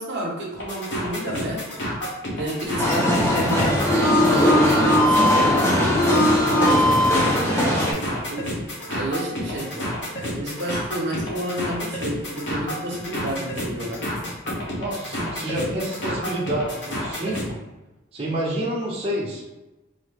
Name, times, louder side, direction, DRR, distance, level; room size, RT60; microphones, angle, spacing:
voice 1, 0.0-1.8 2.4-6.3 6.6-8.5 8.9-14.0, right 1 dB, 60° right, -2 dB, 0.9 m, -30 dB
sound 1, 0.5-17.5, equal, 65° left, 1.2 m, -30 dB
sound 2, 2.8-7.9, left 1 dB, 15° left, 0.7 m, -19 dB
voice 2, 14.8-17.6 18.1-19.4, right 1 dB, 30° right, -5 dB, 0.7 m, -28 dB
4.0 x 2.8 x 3.3 m, 1.1 s
head